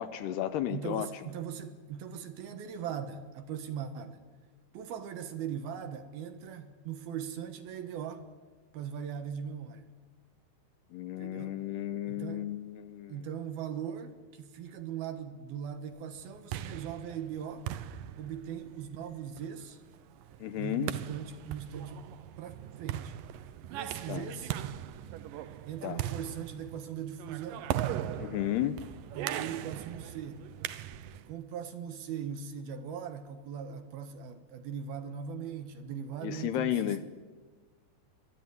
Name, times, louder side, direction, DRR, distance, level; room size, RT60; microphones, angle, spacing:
voice 1, 0.0-1.1 10.9-13.2 20.4-20.9 24.1-24.2 25.8-26.0 28.2-28.8 36.2-37.0, left 12 dB, 75° left, 12 dB, 2.7 m, -33 dB
voice 2, 0.7-4.2 4.7-8.3 8.7-9.9 11.2-11.6 12.1-12.5 13.1-17.7 18.2-19.8 20.6-22.1 22.4-23.2 23.7-24.6 25.7-27.7 29.1-30.4 31.3-37.0, right 8 dB, 65° right, 9 dB, 2.8 m, -40 dB
sound 1, 16.2-31.3, right 11 dB, 85° right, 1.9 m, -39 dB
23.5 x 22.5 x 9.7 m, 1.4 s
omnidirectional pair, 5.2 m